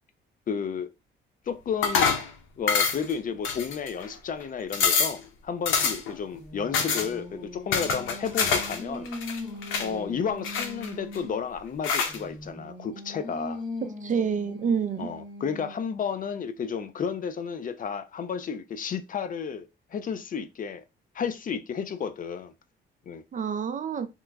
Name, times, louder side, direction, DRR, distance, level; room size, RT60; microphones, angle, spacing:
voice 1, 0.5-0.9 1.5-2.2 2.6-9.1 9.8-13.6 15.0-20.8 21.1-22.5 23.1-23.2, left 6 dB, 45° left, 0.4 m, -32 dB
sound 1, 1.8-2.3 2.7-3.1 3.4-4.1 4.4-4.5 4.7-5.2 5.7-6.1 6.7-7.1 7.7-8.8 9.1-9.9 10.4-11.2 11.8-12.2, left 5 dB, 80° left, 0.7 m, -26 dB
Singing, 6.0-11.5 12.1-16.0, left 1 dB, 25° left, 1.2 m, -40 dB
voice 2, 13.8-15.1 23.3-24.1, right 6 dB, 40° right, 0.5 m, -28 dB
2.9 x 2.2 x 3.4 m
cardioid pair, 90°, 20 cm